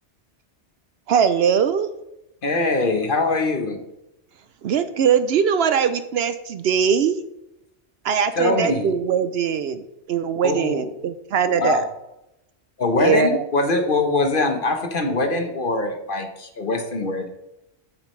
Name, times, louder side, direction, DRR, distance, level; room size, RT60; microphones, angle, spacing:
voice 1, 1.1-1.9 4.6-7.2 8.0-9.8 10.1-11.8 13.0-13.4, right 7 dB, 65° right, 11 dB, 0.8 m, -21 dB
voice 2, 2.4-3.8 8.4-8.9 10.4-10.8 11.5-11.9 12.8-17.3, left 2 dB, 50° left, 5 dB, 1.2 m, -22 dB
8.4 x 8.2 x 3.2 m, 0.87 s
omnidirectional pair, 1.2 m